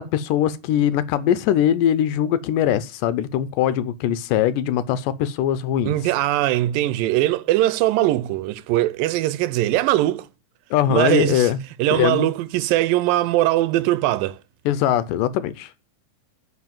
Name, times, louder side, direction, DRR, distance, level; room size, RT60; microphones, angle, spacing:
voice 1, 0.0-5.9 10.7-11.6 11.9-12.3 14.7-15.7, left 10 dB, 80° left, 2.2 m, -21 dB
voice 2, 5.9-10.3 10.9-11.5 11.8-14.4, right 15 dB, 80° right, 2.3 m, -21 dB
9.6 x 5.0 x 7.4 m
omnidirectional pair, 4.0 m